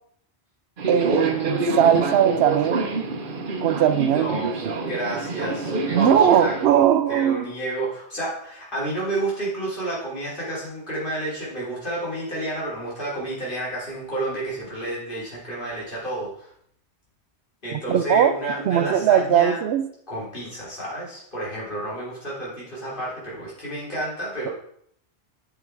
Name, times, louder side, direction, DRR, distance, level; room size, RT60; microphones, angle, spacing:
Subway metro underground, 0.8-6.7, right 3 dB, 55° right, 1.0 m, -27 dB
voice 1, 0.9-2.9 3.6-4.7 5.9-7.4 17.9-18.3 18.7-19.8, right 10 dB, 75° right, 10 dB, 0.8 m, -19 dB
voice 2, 4.1-4.5 4.8-6.8 7.1-16.5 17.6-19.6 20.1-24.5, right 1 dB, 50° left, -6 dB, 3.5 m, -30 dB
7.7 x 6.2 x 4.5 m, 0.67 s
omnidirectional pair, 1.1 m